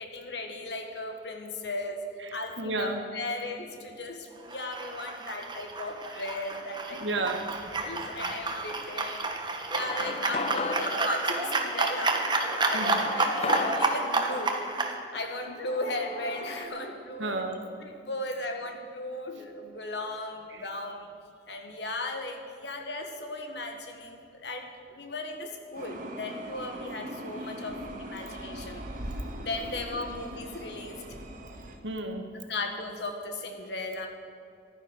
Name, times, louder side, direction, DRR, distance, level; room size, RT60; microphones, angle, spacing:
voice 1, 0.0-2.0 2.3-7.2 7.6-9.2 9.7-12.2 12.6-14.5 15.1-17.5 17.8-21.1 21.5-28.8 29.3-31.0 32.5-34.1, left 2 dB, 65° left, 4 dB, 1.6 m, -36 dB
voice 2, 2.2-3.1 6.9-8.4 9.4-9.7 12.7-13.0 17.2-17.6 20.5-20.6 31.8-32.4, right 2 dB, 85° right, 4 dB, 1.8 m, -34 dB
sound 1, 4.5-14.9, right 3 dB, 25° right, 1.2 m, -30 dB
sound 2, 9.7-16.6, left 3 dB, 35° left, 0.7 m, -37 dB
sound 3, 25.7-31.8, equal, 50° right, 1.7 m, -40 dB
14.5 x 12.0 x 6.4 m, 2.4 s
head